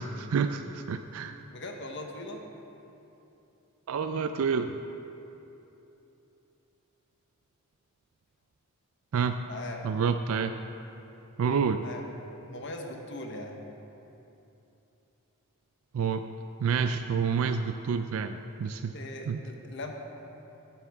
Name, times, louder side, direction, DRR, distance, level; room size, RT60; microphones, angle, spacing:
voice 1, 0.0-1.4 3.9-4.8 9.1-9.3 9.8-10.5 11.4-11.8 15.9-16.2 16.6-18.9 19.3-19.4, right 6 dB, 70° right, 8 dB, 0.3 m, -28 dB
voice 2, 1.5-2.4 9.5-9.9 11.8-12.0 12.5-13.6 18.9-19.9, left 2 dB, 55° left, 2 dB, 1.1 m, -40 dB
13.0 x 9.2 x 3.5 m, 3.0 s
head